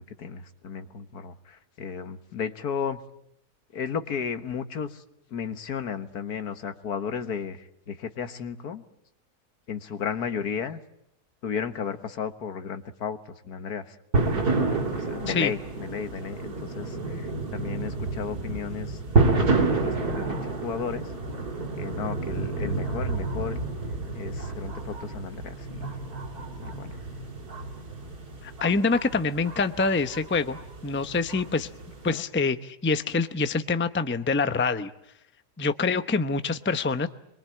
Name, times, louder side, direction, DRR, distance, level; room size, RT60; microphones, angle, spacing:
voice 1, 0.0-3.0 3.7-5.0 5.3-8.8 9.7-10.8 11.4-14.0 14.9-19.0 19.3-21.0 21.8-23.6 24.1-26.0 26.6-27.0 32.1-32.2, left 6 dB, 75° left, 10 dB, 1.8 m, -34 dB
sound 1, 14.1-32.1, right 3 dB, 75° right, 3.8 m, -29 dB
voice 2, 28.4-30.6 30.8-31.7 32.0-34.9 35.6-37.1, left 4 dB, 10° left, 10 dB, 0.6 m, -25 dB
25.0 x 23.0 x 8.9 m, 0.79 s
omnidirectional pair, 1.7 m